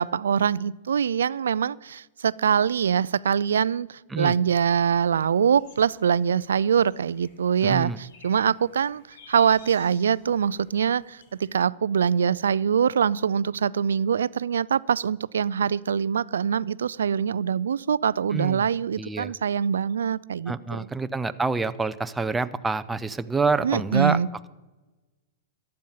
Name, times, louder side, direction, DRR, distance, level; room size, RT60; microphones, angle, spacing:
voice 1, 0.0-9.0 9.3-20.9 23.6-24.5, right 7 dB, 90° right, 20 dB, 0.4 m, -24 dB
sound 1, 4.5-11.6, left 4 dB, 65° left, 2.4 m, -54 dB
voice 2, 7.6-8.0 18.3-18.6 19.0-19.3 20.5-24.2, right 4 dB, 10° right, 11 dB, 0.6 m, -27 dB
14.5 x 10.5 x 5.7 m, 1.1 s
hypercardioid pair, 135°, 0 cm